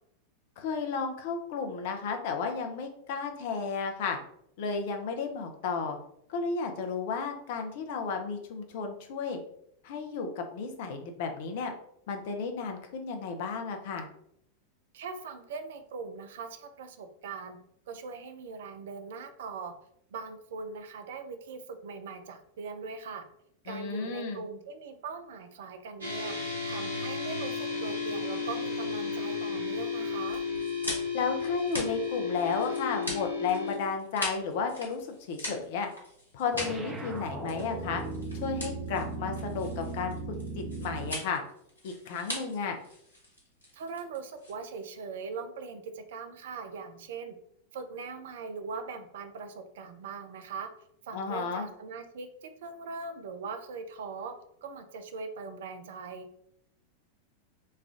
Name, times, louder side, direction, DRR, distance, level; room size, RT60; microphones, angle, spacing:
voice 1, 0.6-4.2 4.6-6.0 6.3-9.4 9.8-11.7 12.1-14.1 23.7-24.4 31.1-35.9 36.3-38.0 38.3-41.4 41.8-42.8 51.1-51.7, left 5 dB, 50° left, 4 dB, 0.5 m, -33 dB
voice 2, 14.9-17.6 17.9-19.7 20.1-23.2 23.6-30.4 43.7-47.3 47.7-50.7 51.0-54.3 54.6-56.3, right 5 dB, 55° right, 8 dB, 0.4 m, -41 dB
sound 1, 26.0-33.8, left 4 dB, 80° right, 1.1 m, -33 dB
sound 2, 30.3-44.9, left 1 dB, 80° left, 1.1 m, -41 dB
sound 3, 36.5-41.3, right 3 dB, 20° right, 0.8 m, -37 dB
3.2 x 2.3 x 3.6 m, 0.73 s
figure-of-eight pair, 90°, 0 cm